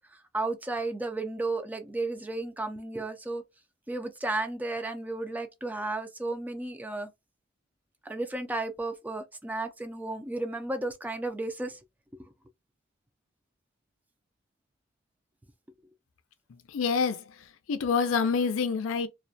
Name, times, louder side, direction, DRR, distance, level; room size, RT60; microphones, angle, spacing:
voice 1, 0.3-3.4 3.9-7.1 8.1-11.8 12.1-12.3, right 2 dB, 10° right, 0.3 m, -33 dB
voice 2, 16.7-17.2 17.7-19.1, left 5 dB, 85° left, 0.4 m, -26 dB
2.3 x 2.1 x 2.5 m
head